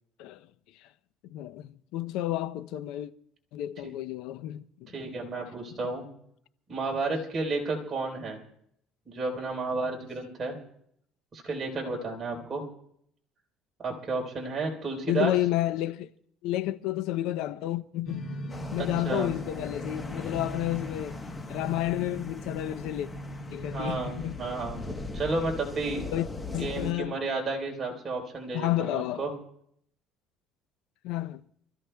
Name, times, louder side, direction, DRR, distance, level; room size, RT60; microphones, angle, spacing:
voice 1, 1.3-3.1 3.5-4.9 15.1-16.1 16.4-18.2 18.7-21.2 21.5-23.1 23.5-24.4 26.1-26.3 26.5-27.2 28.5-29.2 31.0-31.4, left 14 dB, 75° left, 0.6 m, -31 dB
voice 2, 4.9-6.1 6.7-8.4 9.1-10.6 11.3-12.6 13.8-15.3 18.8-19.3 23.7-26.0 26.5-29.3, right 3 dB, 30° right, 3.9 m, -32 dB
sound 1, 18.1-26.5, equal, 40° left, 5.1 m, -41 dB
sound 2, 18.5-26.9, left 3 dB, 15° left, 1.1 m, -40 dB
28.0 x 14.5 x 2.3 m
cardioid pair, 140°, 0 cm